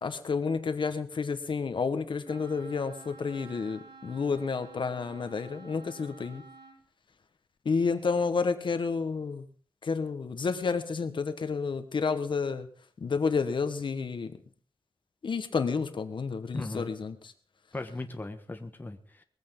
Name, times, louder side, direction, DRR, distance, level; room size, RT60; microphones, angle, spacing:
voice 1, 0.0-6.4 7.6-9.4 9.8-12.7 13.0-14.3 15.2-17.3, left 5 dB, 65° left, 9 dB, 1.5 m, -30 dB
Wind instrument woodwind instrument, 2.2-6.8, right 4 dB, 60° right, 5.0 m, -51 dB
voice 2, 16.5-16.9 17.7-19.2, left 2 dB, 20° left, 6 dB, 1.3 m, -37 dB
21.0 x 15.0 x 3.9 m, 0.42 s
wide cardioid pair, 125°, 9 cm